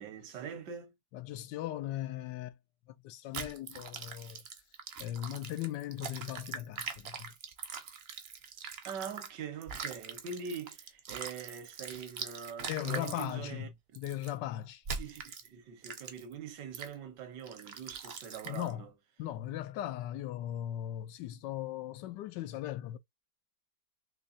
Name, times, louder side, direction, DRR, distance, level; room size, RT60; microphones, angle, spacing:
voice 1, 0.0-0.9 8.8-13.7 15.0-18.9, right 6 dB, 80° right, 1.6 m, -43 dB
voice 2, 1.1-2.6 3.0-4.4 5.0-7.3 12.7-14.8 18.4-18.9 19.2-23.0, left 13 dB, 85° left, 1.3 m, -38 dB
sound 1, 3.3-9.3 9.6-13.3 13.9-14.3 14.8-15.5 15.8-16.3 16.7-16.9 17.5-18.7, right 6 dB, 55° right, 0.7 m, -42 dB
3.9 x 3.0 x 2.5 m
omnidirectional pair, 1.8 m